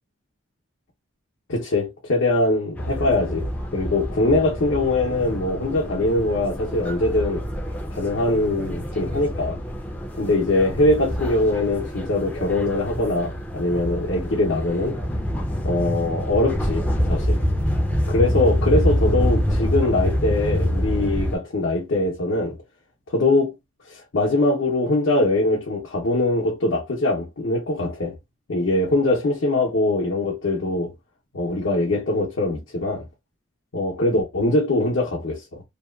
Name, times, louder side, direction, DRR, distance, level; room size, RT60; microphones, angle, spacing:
voice 1, 1.5-3.5 3.7-7.4 7.9-9.6 10.2-15.0 15.6-17.4 18.1-22.6 23.1-23.6 23.9-28.1 28.5-30.9 31.3-33.1 33.7-35.6, left 2 dB, 65° left, 0.7 m, -22 dB
sound 1, 2.8-21.4, equal, 5° left, 0.4 m, -26 dB
2.8 x 2.2 x 2.2 m
head